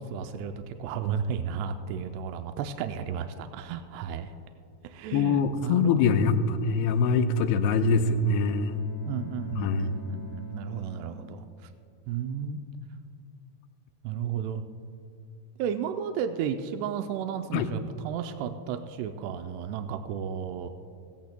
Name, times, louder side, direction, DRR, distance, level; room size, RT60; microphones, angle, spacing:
voice 1, 0.0-4.3 4.8-6.0 9.1-11.5 12.1-12.6 14.0-14.6 15.6-20.7, right 7 dB, 85° right, 7 dB, 2.6 m, -33 dB
voice 2, 5.1-8.8 9.5-9.9 17.5-17.7, left 4 dB, 80° left, 8 dB, 2.3 m, -24 dB
Bowed string instrument, 7.4-12.4, left 3 dB, 65° left, 1.0 m, -47 dB
16.5 x 16.0 x 2.2 m, 2.5 s
omnidirectional pair, 4.9 m